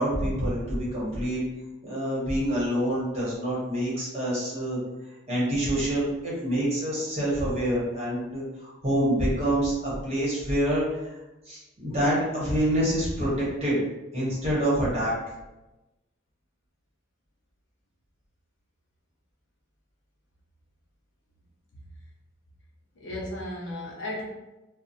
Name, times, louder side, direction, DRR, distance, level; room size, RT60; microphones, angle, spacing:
voice 1, 0.0-1.4 1.8-4.8 5.3-11.2 11.4-13.8 14.1-15.1, right 1 dB, 30° right, -7 dB, 0.9 m, -26 dB
voice 2, 22.9-24.2, left 1 dB, 65° left, -3 dB, 0.7 m, -35 dB
2.9 x 2.1 x 2.7 m, 1.0 s
head